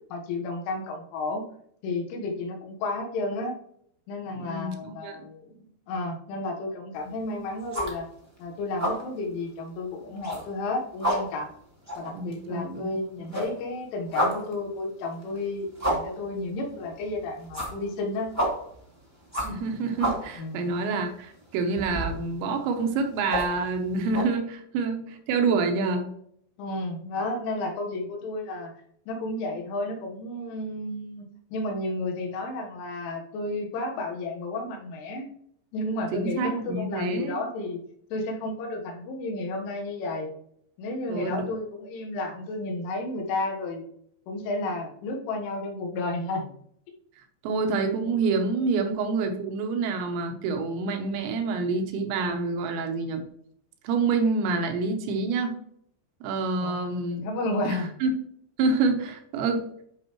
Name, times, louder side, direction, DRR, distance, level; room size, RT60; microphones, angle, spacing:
voice 1, 0.1-1.5 1.8-3.6 4.1-5.6 5.9-8.1 8.4-11.5 12.0-18.3 20.4-20.6 26.6-28.7 29.1-35.3 35.7-37.8 38.1-40.3 40.8-43.9 44.3-46.5 56.6-56.9 57.2-57.9, left 2 dB, 85° left, 2 dB, 3.7 m, -32 dB
voice 2, 4.3-5.2 12.2-13.0 13.3-13.4 19.4-26.1 36.1-37.4 41.1-41.5 47.4-53.2 53.8-55.6 56.2-57.2 57.6-58.1 58.6-59.7, right 4 dB, 80° right, 5 dB, 3.1 m, -27 dB
sound 1, 7.0-7.3 7.6-8.4 8.6-9.1 9.5-9.6 10.0-10.7 10.9-13.0 13.2-24.2, equal, 20° right, 0.4 m, -31 dB
10.5 x 5.3 x 3.0 m, 0.68 s
omnidirectional pair, 5.4 m